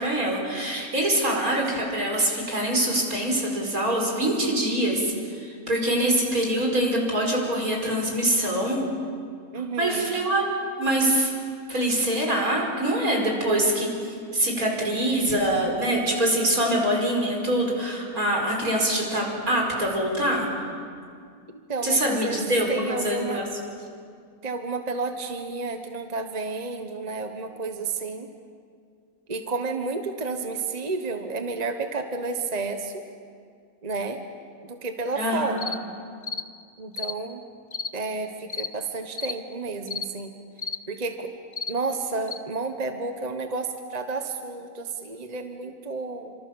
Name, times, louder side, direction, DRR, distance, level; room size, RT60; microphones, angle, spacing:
voice 1, 0.0-8.8 9.8-11.3 11.7-20.5 21.8-23.5 35.2-35.7, right 1 dB, 70° right, 0 dB, 5.7 m, -24 dB
voice 2, 9.5-10.3 21.5-22.4 22.7-23.4 24.4-28.3 29.3-33.0 33.8-34.2 34.6-35.6 36.8-37.4 37.9-40.3 40.9-41.3 41.7-46.3, right 3 dB, 30° right, 6 dB, 1.3 m, -31 dB
sound 1, 35.6-35.8 36.2-36.5 36.9-37.1 37.7-37.9 38.5-38.7 39.1-39.4 39.9-40.1 40.6-40.8 41.5-41.7 42.3-42.4, left 5 dB, 35° left, 0.9 m, -32 dB
28.0 x 26.0 x 7.2 m, 2.2 s
omnidirectional pair, 1.6 m